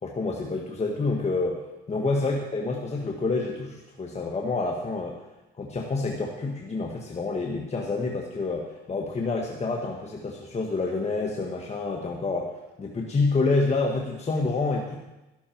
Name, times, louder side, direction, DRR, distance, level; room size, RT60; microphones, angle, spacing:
voice 1, 0.0-5.2 5.6-12.5 12.8-15.0, left 3 dB, 35° left, 0 dB, 1.6 m, -28 dB
13.0 x 12.5 x 4.6 m, 1.0 s
cardioid pair, 90°, 20 cm